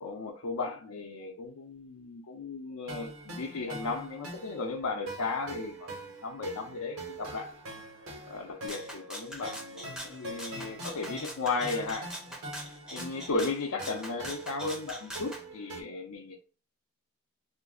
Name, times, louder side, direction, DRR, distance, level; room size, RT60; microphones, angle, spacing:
voice 1, 0.0-5.9 6.2-7.5 8.3-12.4 12.9-16.4, left 3 dB, 80° left, 0.5 m, -35 dB
sound 1, 2.9-15.8, right 2 dB, 75° right, 1.1 m, -44 dB
Rattle (instrument), 8.7-15.4, equal, 5° right, 0.5 m, -43 dB
2.5 x 2.3 x 3.6 m
head